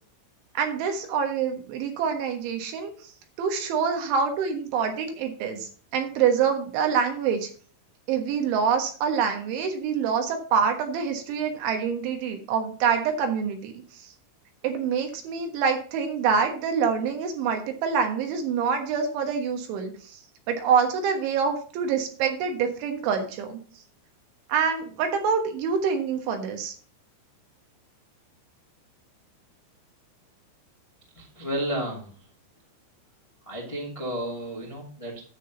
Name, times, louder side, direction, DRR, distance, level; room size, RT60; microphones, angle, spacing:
voice 1, 0.6-2.9 3.4-7.5 8.1-13.7 14.6-20.2 20.5-23.6 24.5-26.7, right 6 dB, 75° right, 5 dB, 3.7 m, -26 dB
voice 2, 31.1-32.1 33.4-35.2, right 1 dB, 20° left, -3 dB, 0.8 m, -32 dB
9.9 x 7.7 x 3.9 m, 0.41 s
omnidirectional pair, 5.5 m